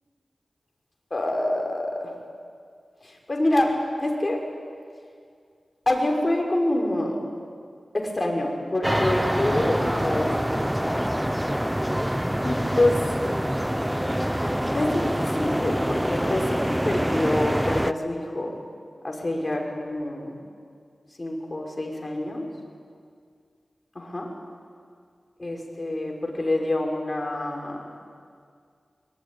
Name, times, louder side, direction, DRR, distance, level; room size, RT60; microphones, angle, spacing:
voice 1, 1.1-2.1 3.0-4.4 5.9-7.2 7.9-10.7 12.4-13.1 14.7-18.5 19.0-20.3 21.2-22.4 24.0-24.3 25.4-27.8, left 1 dB, 35° left, 1 dB, 5.4 m, -26 dB
sound 1, 8.8-17.9, equal, 5° right, 0.8 m, -25 dB
24.5 x 23.0 x 9.9 m, 2.2 s
wide cardioid pair, 85°, 0 cm